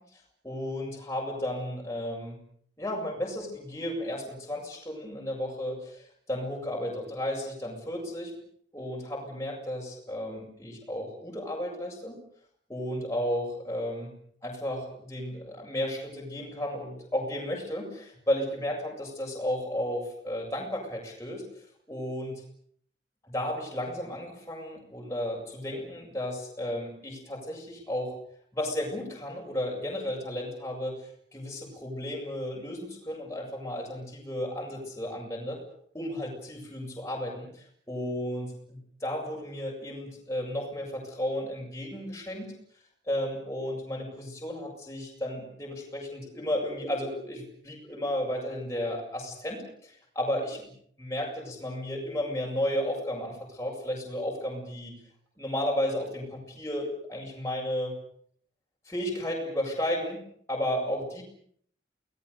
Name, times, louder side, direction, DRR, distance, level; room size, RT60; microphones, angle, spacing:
voice 1, 0.0-2.4 2.8-8.3 8.7-12.2 12.7-14.1 14.4-22.4 23.2-28.1 28.5-35.6 35.9-42.5 43.1-50.7 51.0-54.9 55.4-57.9 58.9-60.2 60.5-61.2, left 1 dB, 15° left, -2 dB, 7.4 m, -33 dB
30.0 x 20.0 x 7.0 m, 0.63 s
head